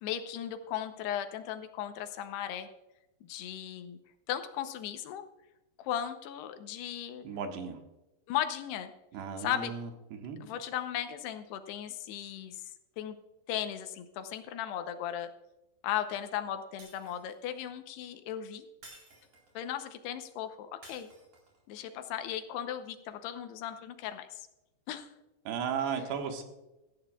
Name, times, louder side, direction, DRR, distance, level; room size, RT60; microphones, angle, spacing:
voice 1, 0.0-2.7 3.3-4.0 4.3-5.2 5.8-7.2 8.3-8.9 9.4-9.7 10.4-12.6 13.0-13.2 13.5-15.3 15.8-18.6 19.6-21.1 21.7-24.5 24.9-25.1, left 10 dB, 80° left, 8 dB, 2.8 m, -36 dB
voice 2, 7.3-7.8 9.1-10.4 25.5-26.4, right 7 dB, 80° right, 4 dB, 3.5 m, -35 dB
Shatter, 16.8-17.5 18.8-19.6 20.8-21.6, right 2 dB, 45° right, 5.2 m, -54 dB
17.5 x 13.5 x 2.3 m, 0.98 s
omnidirectional pair, 4.9 m